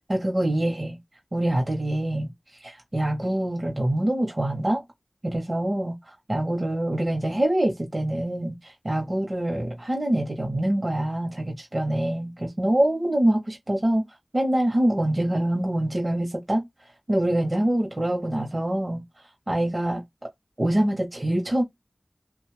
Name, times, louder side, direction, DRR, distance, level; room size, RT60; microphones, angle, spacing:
voice 1, 0.1-1.0 1.3-2.3 2.6-4.8 5.2-14.0 14.3-16.7 17.1-19.0 19.5-20.0 20.6-21.6, right 1 dB, 50° right, 1.0 m, -25 dB
2.7 x 2.4 x 3.2 m
wide cardioid pair, 50°, 0 cm